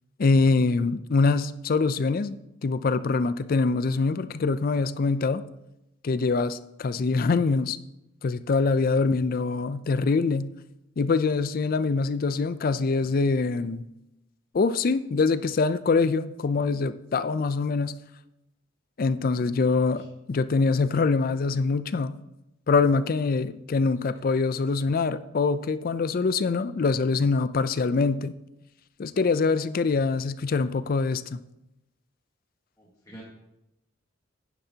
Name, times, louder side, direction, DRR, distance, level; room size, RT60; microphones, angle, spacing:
voice 1, 0.2-5.4 6.0-7.8 8.2-10.5 11.0-13.8 14.5-18.0 19.0-22.1 22.7-28.3 29.0-31.4, left 4 dB, 45° left, 13 dB, 0.4 m, -24 dB
voice 2, 32.8-33.2, right 1 dB, 15° left, -5 dB, 1.5 m, -48 dB
10.0 x 10.0 x 2.8 m, 0.89 s
head